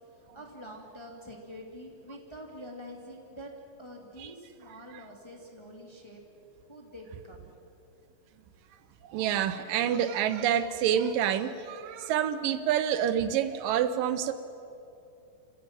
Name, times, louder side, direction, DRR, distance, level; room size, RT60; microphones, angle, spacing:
voice 1, 0.2-3.5 3.8-6.2 6.7-7.4, equal, 10° left, 0 dB, 2.2 m, -46 dB
voice 2, 9.0-14.3, right 9 dB, 80° right, 12 dB, 2.4 m, -27 dB
29.0 x 15.5 x 9.0 m, 2.7 s
omnidirectional pair, 4.0 m